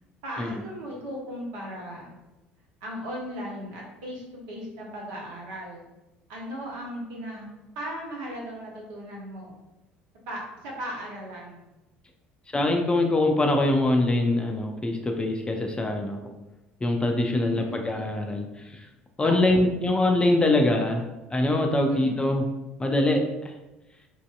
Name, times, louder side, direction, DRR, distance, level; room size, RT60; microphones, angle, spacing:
voice 1, 0.2-2.1 2.8-5.9 6.3-7.5 7.7-9.5 10.3-11.7 17.3-17.8 19.2-19.6 21.9-22.3, equal, 65° right, -2 dB, 0.8 m, -37 dB
voice 2, 12.5-16.2 16.8-18.4 19.2-21.0 21.3-22.4 22.8-23.5, left 2 dB, 15° left, 3 dB, 0.4 m, -23 dB
3.1 x 2.5 x 2.3 m, 1.0 s
figure-of-eight pair, 60°, 6 cm